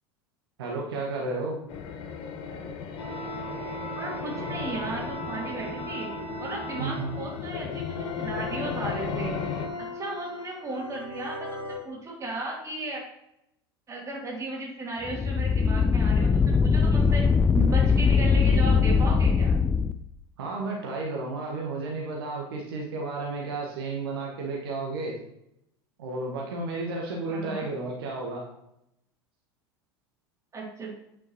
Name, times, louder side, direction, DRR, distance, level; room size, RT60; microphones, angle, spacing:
voice 1, 0.6-1.6 6.8-7.1 20.4-25.2 26.0-28.4, right 3 dB, 65° right, -1 dB, 1.3 m, -32 dB
sound 1, 1.7-9.7, left 6 dB, 40° left, 1.0 m, -36 dB
sound 2, 3.0-11.8, left 1 dB, 70° left, 1.4 m, -38 dB
voice 2, 4.0-6.1 6.4-9.5 9.9-13.0 13.9-17.2 17.5-19.6 27.3-27.7 30.5-30.9, right 2 dB, 20° right, -2 dB, 2.7 m, -35 dB
sound 3, 15.0-19.9, left 5 dB, 10° left, 0.4 m, -21 dB
8.7 x 6.5 x 2.9 m, 0.81 s
figure-of-eight pair, 75°, 14 cm